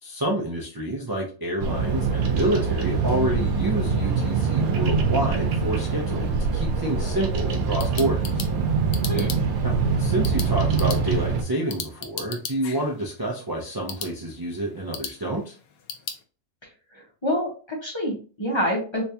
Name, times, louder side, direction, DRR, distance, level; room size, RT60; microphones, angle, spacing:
voice 1, 0.0-8.4 9.6-15.6, right 1 dB, 35° right, -3 dB, 0.3 m, -28 dB
Bird vocalization bird call bird song, 1.6-11.4, right 5 dB, 90° right, 1.1 m, -24 dB
sound 1, 7.5-16.2, left 7 dB, 85° left, 1.1 m, -39 dB
voice 2, 16.9-19.0, equal, 20° left, -3 dB, 1.2 m, -27 dB
3.4 x 3.1 x 2.7 m, 0.38 s
omnidirectional pair, 1.5 m